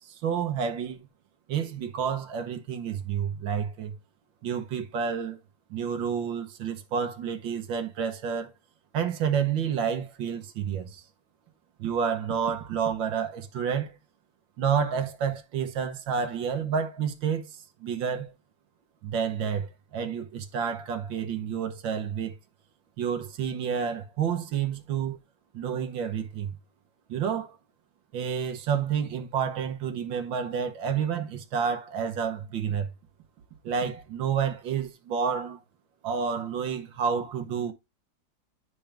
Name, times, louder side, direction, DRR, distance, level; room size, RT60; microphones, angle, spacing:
voice 1, 0.1-1.0 1.5-3.9 4.4-5.4 5.7-8.5 8.9-11.0 11.8-14.0 14.6-18.3 19.0-22.4 23.0-25.2 25.5-26.5 27.1-27.6 28.1-32.9 33.6-35.6 36.0-37.7, right 7 dB, 90° right, 1.8 m, -29 dB
10.0 x 4.6 x 3.4 m
omnidirectional pair, 2.0 m